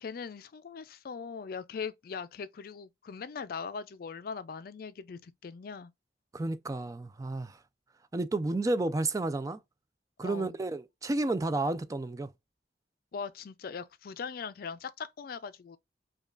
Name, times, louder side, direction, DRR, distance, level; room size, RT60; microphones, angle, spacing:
voice 1, 0.0-5.9 10.2-10.6 13.1-15.8, left 5 dB, 55° left, 0.4 m, -40 dB
voice 2, 6.3-7.6 8.1-9.6 10.2-12.3, right 2 dB, 20° right, 0.3 m, -31 dB
5.1 x 2.3 x 2.4 m
head